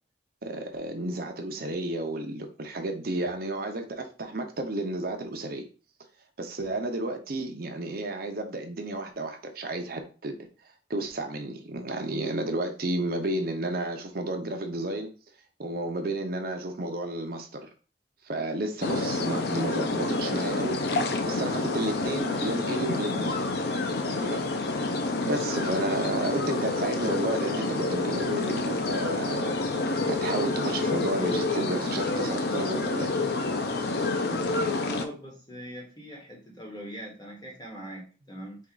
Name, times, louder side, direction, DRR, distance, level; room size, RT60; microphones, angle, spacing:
voice 1, 0.4-5.6 6.4-10.4 10.9-15.1 15.6-17.7 18.2-20.8 21.3-23.4 24.0-24.4 25.2-29.6 30.1-33.1, right 2 dB, 50° right, 5 dB, 0.6 m, -32 dB
sound 1, 18.8-35.1, left 3 dB, 55° left, 0.5 m, -28 dB
voice 2, 33.9-38.6, equal, 20° left, -1 dB, 1.2 m, -41 dB
4.4 x 2.4 x 3.8 m, 0.36 s
head